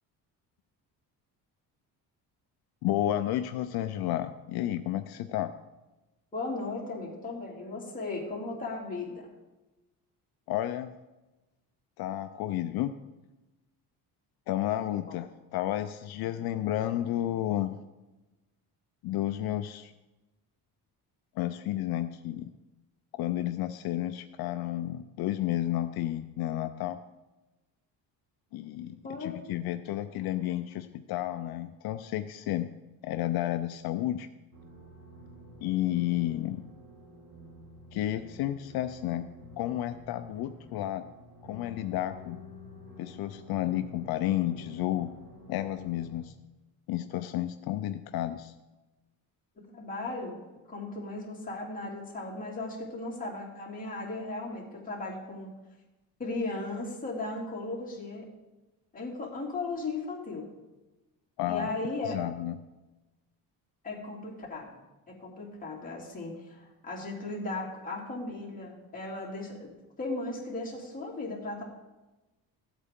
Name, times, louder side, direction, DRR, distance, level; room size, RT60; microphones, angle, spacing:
voice 1, 2.8-5.5 10.5-10.9 12.0-12.9 14.5-17.8 19.0-19.9 21.4-22.4 23.1-27.0 28.5-32.7 33.0-34.3 35.6-36.6 37.9-39.3 39.6-41.0 41.4-42.4 43.0-45.1 45.5-46.3 46.9-48.5 61.4-61.7 62.1-62.6, left 13 dB, 75° left, 8 dB, 0.6 m, -31 dB
voice 2, 6.3-9.1 15.1-15.2 29.0-29.4 49.7-50.4 50.7-55.5 56.2-58.3 58.9-60.5 61.5-62.2 63.8-64.8 65.1-69.7 70.0-71.6, left 2 dB, 20° left, -3 dB, 2.8 m, -36 dB
sound 1, 34.5-46.2, left 2 dB, 55° right, 4.2 m, -49 dB
15.5 x 8.2 x 3.7 m, 1.1 s
cardioid pair, 140°, 37 cm